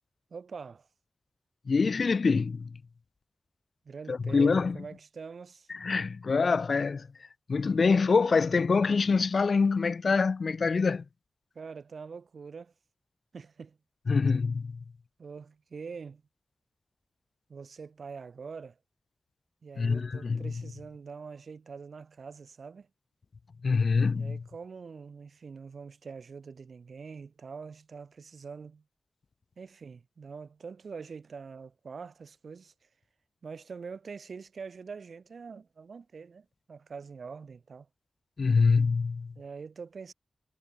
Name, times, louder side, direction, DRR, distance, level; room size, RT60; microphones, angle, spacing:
voice 1, 0.3-0.9 3.8-5.7 11.5-12.7 13.3-13.8 15.2-16.2 17.5-18.8 19.6-22.9 24.1-28.8 29.6-32.7 33.4-37.9 39.4-40.1, right 5 dB, 65° right, 1.4 m, -44 dB
voice 2, 1.7-2.8 4.1-4.8 5.7-7.1 7.5-11.0 14.1-14.7 19.8-20.5 23.6-24.4 38.4-39.3, left 4 dB, 55° left, 0.5 m, -25 dB
wide cardioid pair, 150°, 0 cm